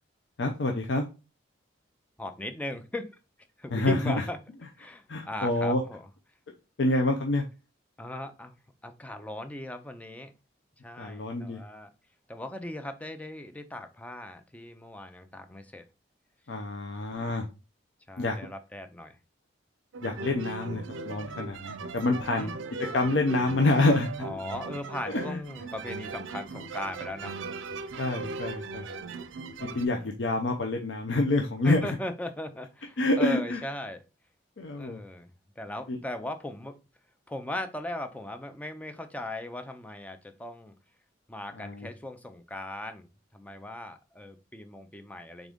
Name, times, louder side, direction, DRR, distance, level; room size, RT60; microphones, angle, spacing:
voice 1, 0.4-1.1 3.7-4.1 5.1-5.8 6.8-7.4 11.0-11.6 16.5-17.5 18.2-18.3 20.0-22.5 22.9-24.1 25.0-25.4 28.0-28.9 29.6-31.9 33.0-33.6 34.6-35.0 35.9-36.0 41.5-41.9, left 2 dB, 70° left, 3 dB, 0.6 m, -27 dB
voice 2, 2.2-3.2 3.6-4.4 4.8-6.1 8.0-8.5 8.8-10.3 10.8-11.9 12.3-15.8 18.1-19.2 22.2-22.6 24.2-27.4 28.6-29.0 29.6-30.1 31.6-34.0 34.8-35.3 35.6-36.8 37.3-40.7 41.3-43.1 43.3-45.5, left 1 dB, 10° left, 8 dB, 0.4 m, -38 dB
sound 1, 19.9-29.8, right 4 dB, 80° right, 0.5 m, -38 dB
3.8 x 3.6 x 3.5 m, 0.30 s
head